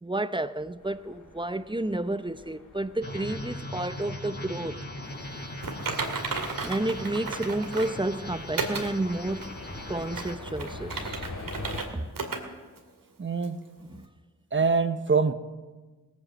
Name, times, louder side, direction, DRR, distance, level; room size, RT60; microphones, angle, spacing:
voice 1, 0.0-4.8 6.6-9.6 9.9-11.3 11.9-12.1 13.9-14.1, right 2 dB, 15° right, 0.7 m, -31 dB
sound 1, 0.8-11.8, left 2 dB, 70° left, 3.4 m, -45 dB
sound 2, 3.0-10.4, left 1 dB, 30° left, 4.6 m, -39 dB
Typing, 5.6-8.0 8.6-8.9 9.4-9.5 10.0-11.9 12.1-12.4 12.8-12.9 13.4-13.5, right 4 dB, 75° right, 2.3 m, -33 dB
voice 2, 13.2-13.6 14.5-15.3, right 4 dB, 35° right, 1.0 m, -24 dB
18.0 x 9.2 x 7.5 m
cardioid pair, 50°, 34 cm